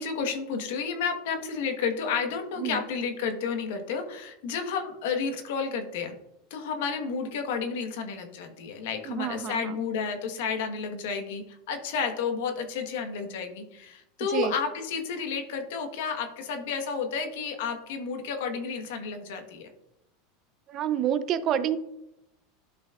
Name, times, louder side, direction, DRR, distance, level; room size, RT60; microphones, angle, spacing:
voice 1, 0.0-6.2 6.5-19.7, left 5 dB, 75° left, 6 dB, 1.2 m, -31 dB
voice 2, 9.1-9.8 14.3-14.5 20.7-21.8, right 10 dB, 45° right, 12 dB, 0.6 m, -28 dB
12.0 x 5.2 x 2.4 m, 0.86 s
supercardioid pair, 115°, 0 cm